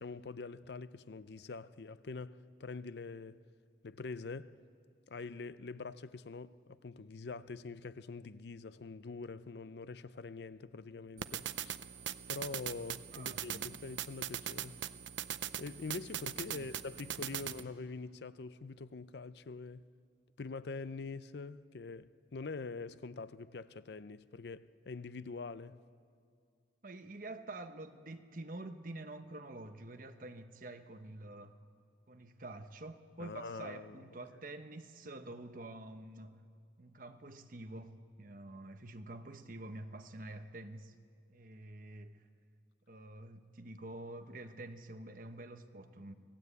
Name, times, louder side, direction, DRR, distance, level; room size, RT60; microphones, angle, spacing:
voice 1, 0.0-3.4 3.8-4.6 5.1-11.8 12.3-14.8 15.6-19.9 20.4-25.8 33.2-34.0, left 4 dB, 65° left, 0.5 m, -45 dB
sound 1, 11.2-17.6, right 10 dB, 90° right, 0.6 m, -41 dB
voice 2, 13.1-13.6 16.5-16.7 17.3-17.5 26.8-31.6 32.1-36.4 36.8-40.9 41.3-42.2 42.9-46.1, right 2 dB, 50° right, 1.0 m, -48 dB
25.5 x 17.0 x 8.3 m
head